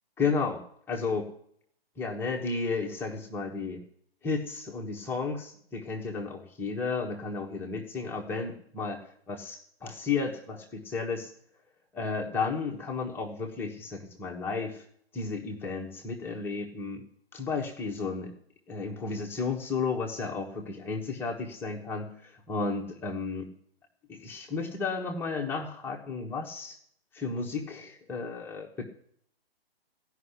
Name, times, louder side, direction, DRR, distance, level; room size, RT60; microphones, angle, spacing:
voice 1, 0.2-0.6 0.9-1.3 2.0-3.8 4.2-9.0 9.3-11.3 11.9-14.8 15.1-17.0 17.3-18.3 18.7-23.5 24.1-26.8 27.1-28.8, left 4 dB, 5° left, -1 dB, 1.2 m, -33 dB
15.0 x 5.8 x 9.9 m, 0.65 s
hypercardioid pair, 150°, 30 cm